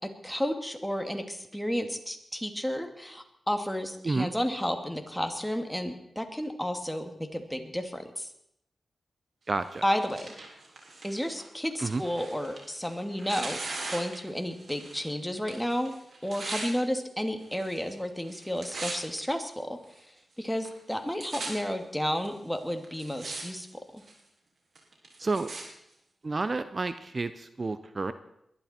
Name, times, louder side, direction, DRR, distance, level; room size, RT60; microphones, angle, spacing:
voice 1, 0.0-8.3 9.8-10.3 11.0-13.6 13.9-15.9 16.2-19.8 20.4-23.7 23.9-24.0, equal, 5° left, 6 dB, 2.5 m, -32 dB
voice 2, 9.5-9.8 11.8-12.0 25.2-25.5 26.2-28.1, right 3 dB, 45° right, 12 dB, 0.8 m, -30 dB
Tearing, 9.6-15.1 15.3-16.7 17.4-17.9 18.2-19.2 19.8-19.9 20.6-20.7 20.9-21.5 22.2-22.3 22.8-23.4 23.7-24.2 24.7-25.6 26.4-26.5, right 3 dB, 65° right, 4.8 m, -40 dB
21.5 x 12.0 x 4.5 m, 0.78 s
cardioid pair, 50°, 0 cm